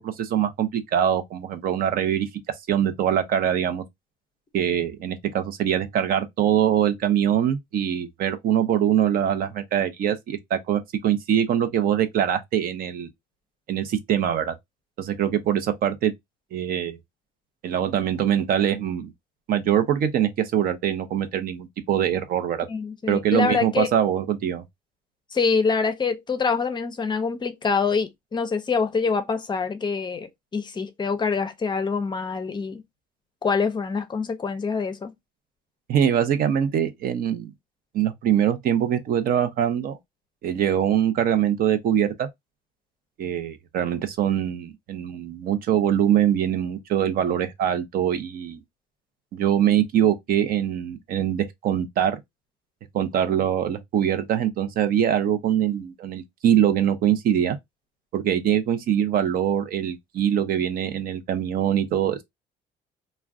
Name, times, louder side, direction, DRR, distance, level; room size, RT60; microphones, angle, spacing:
voice 1, 0.0-2.3 2.7-3.8 4.5-13.1 13.7-14.5 15.0-16.1 16.5-17.0 17.6-19.1 19.5-22.7 23.1-24.6 35.9-37.5 37.9-40.0 40.4-42.3 43.2-48.6 49.3-52.2 52.9-57.6 58.1-62.2, right 10 dB, 60° right, 0.6 m, -23 dB
voice 2, 22.7-23.9 25.3-32.8 33.4-35.1, left 5 dB, 25° left, 0.5 m, -25 dB
2.4 x 2.1 x 3.5 m
cardioid pair, 110°, 17 cm